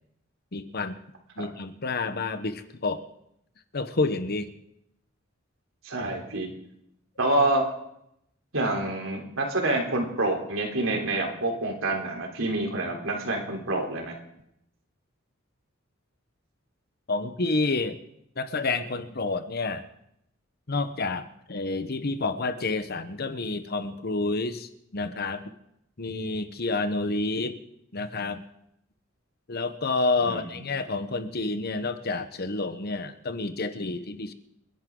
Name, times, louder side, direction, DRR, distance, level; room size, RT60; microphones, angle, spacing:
voice 1, 0.5-1.0 1.4-3.0 3.7-4.5 17.1-18.0 18.4-19.8 20.7-25.4 26.0-27.6 27.9-28.4 29.5-34.3, left 3 dB, 50° left, 10 dB, 1.0 m, -29 dB
voice 2, 5.8-6.5 7.2-7.6 8.5-14.2 30.2-30.6, right 2 dB, 80° right, 1 dB, 3.7 m, -27 dB
29.0 x 11.0 x 3.9 m, 0.78 s
head